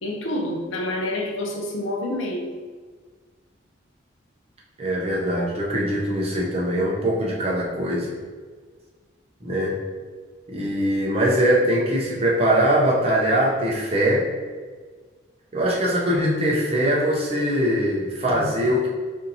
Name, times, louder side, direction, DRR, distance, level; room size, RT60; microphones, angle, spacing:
voice 1, 0.0-2.5, left 1 dB, 90° left, 1 dB, 0.6 m, -28 dB
voice 2, 4.8-8.1 9.4-9.7 10.5-14.2 15.5-18.9, equal, 30° right, -4 dB, 0.6 m, -22 dB
4.3 x 2.6 x 2.7 m, 1.5 s
head